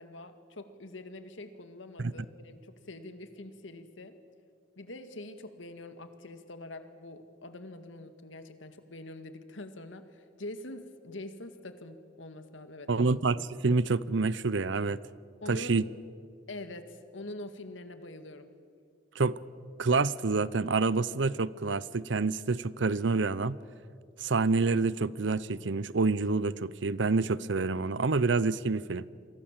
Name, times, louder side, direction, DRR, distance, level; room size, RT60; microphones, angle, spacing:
voice 1, 0.0-4.2 4.8-13.1 15.4-15.8 16.5-18.5, left 1 dB, 85° left, 9 dB, 2.0 m, -44 dB
voice 2, 12.9-15.0 15.5-15.8 19.2-19.4 19.8-23.6 24.2-29.1, right 3 dB, 70° right, 19 dB, 0.7 m, -27 dB
28.5 x 23.0 x 7.5 m, 2.2 s
head